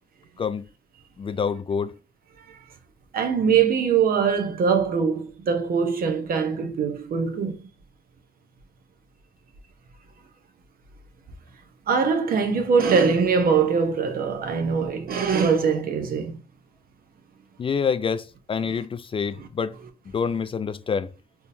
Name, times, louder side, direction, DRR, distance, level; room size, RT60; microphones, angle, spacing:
voice 1, 1.2-1.9 17.6-19.7 20.1-21.1, left 6 dB, 35° left, 0.3 m, -27 dB
voice 2, 3.1-7.7 11.9-16.4, right 6 dB, 65° right, 0.8 m, -22 dB
3.5 x 2.9 x 2.6 m
cardioid pair, 75°, 16 cm